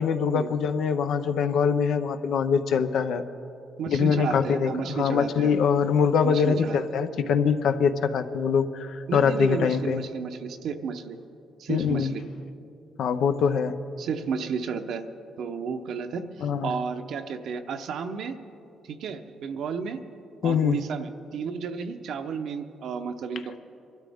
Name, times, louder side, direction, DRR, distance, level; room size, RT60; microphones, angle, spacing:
voice 1, 0.0-3.2 3.9-10.0 11.7-12.1 13.0-13.8 16.4-16.7 20.4-20.8, left 6 dB, 70° left, 10 dB, 0.7 m, -23 dB
voice 2, 3.8-5.5 6.2-6.8 9.1-11.2 11.6-12.3 14.0-15.0 15.4-18.3 18.8-20.0 20.4-23.6, right 6 dB, 70° right, 7 dB, 0.8 m, -32 dB
24.0 x 12.5 x 3.6 m, 2.7 s
cardioid pair, 110°, 0 cm